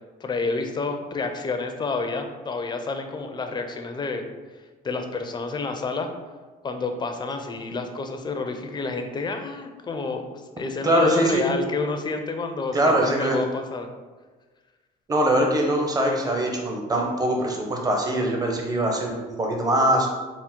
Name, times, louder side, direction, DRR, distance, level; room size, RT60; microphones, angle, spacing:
voice 1, 0.2-4.2 4.8-6.1 6.6-13.9, left 3 dB, 25° left, 6 dB, 0.4 m, -29 dB
voice 2, 10.8-11.5 12.7-13.4 15.1-20.1, right 1 dB, 20° right, 1 dB, 0.7 m, -22 dB
3.6 x 2.0 x 4.3 m, 1.3 s
cardioid pair, 110°, 17 cm